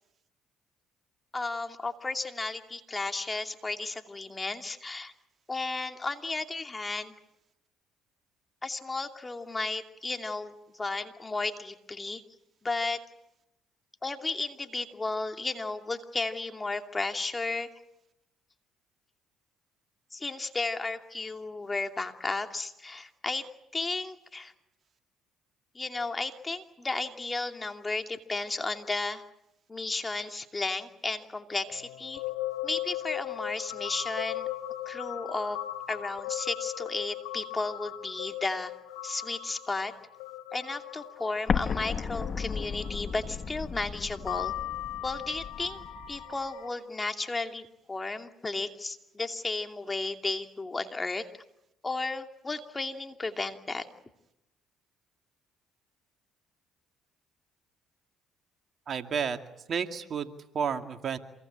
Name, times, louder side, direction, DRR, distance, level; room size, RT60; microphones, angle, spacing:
voice 1, 1.3-5.1 5.5-7.1 8.6-12.2 12.6-13.0 14.0-17.7 20.1-23.4 23.7-24.5 25.7-29.2 29.7-32.2 32.6-34.5 34.9-35.6 35.9-38.7 39.0-39.9 40.5-44.5 45.0-45.8 46.1-51.3 51.8-53.9, left 3 dB, 25° left, 6 dB, 2.7 m, -34 dB
sound 1, 31.6-43.5 44.1-46.7, left 14 dB, 85° left, 3.1 m, -38 dB
Explosion, 41.5-46.2, left 6 dB, 45° left, 1.4 m, -34 dB
voice 2, 58.9-59.4 59.7-61.2, right 7 dB, 50° right, 7 dB, 2.3 m, -31 dB
27.5 x 22.5 x 8.9 m, 0.84 s
supercardioid pair, 65°, 0 cm